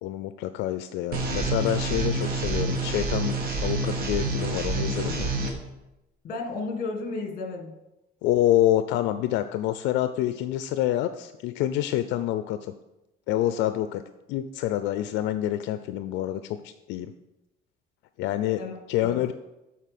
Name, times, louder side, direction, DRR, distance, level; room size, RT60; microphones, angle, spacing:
voice 1, 0.0-5.3 8.2-12.7 13.3-14.0 14.3-17.1 18.2-18.6 18.9-19.3, left 13 dB, 85° left, 10 dB, 0.4 m, -27 dB
sound 1, 1.1-5.5, right 3 dB, 55° right, 1.3 m, -28 dB
voice 2, 6.2-7.8 18.6-18.8 19.0-19.3, left 3 dB, 50° left, 3 dB, 1.5 m, -33 dB
8.2 x 4.5 x 5.9 m, 0.98 s
cardioid pair, 145°, 18 cm